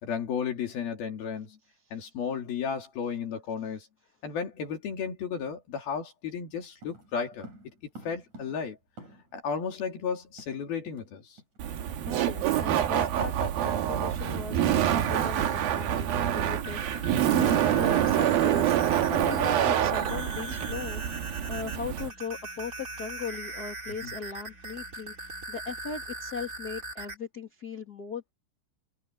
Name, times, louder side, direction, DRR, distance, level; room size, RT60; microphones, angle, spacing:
voice 1, 0.0-1.6 1.9-3.9 4.2-7.5 8.0-8.8 9.3-11.4 24.0-24.1, left 6 dB, 70° left, 4.8 m, -33 dB
sound 1, 6.8-9.5 9.7-9.8 10.1-11.1 11.4-11.6 12.0-12.2, right 1 dB, 45° right, 7.9 m, -50 dB
Laughter, 11.6-22.1, right 10 dB, 75° right, 3.4 m, -26 dB
voice 2, 12.1-21.0 21.5-28.3, left 5 dB, 30° left, 2.6 m, -39 dB
sound 2, 16.5-27.2, right 2 dB, 20° right, 3.3 m, -40 dB
omnidirectional pair, 4.5 m